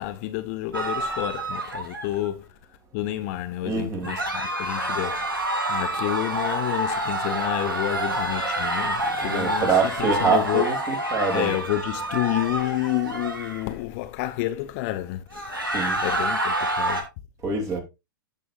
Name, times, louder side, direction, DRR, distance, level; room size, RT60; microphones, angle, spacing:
voice 1, 0.0-2.5 2.9-5.3 5.7-10.7 11.3-15.6 16.0-17.1, left 15 dB, 40° left, 0.7 m, -29 dB
sound 1, 0.7-2.3 4.0-13.7 15.3-17.0, right 1 dB, 80° right, 2.3 m, -28 dB
voice 2, 3.6-4.1 9.2-11.6 15.7-16.0 17.4-17.8, right 5 dB, 25° right, 2.7 m, -25 dB
15.5 x 5.4 x 2.5 m
figure-of-eight pair, 100°, 11 cm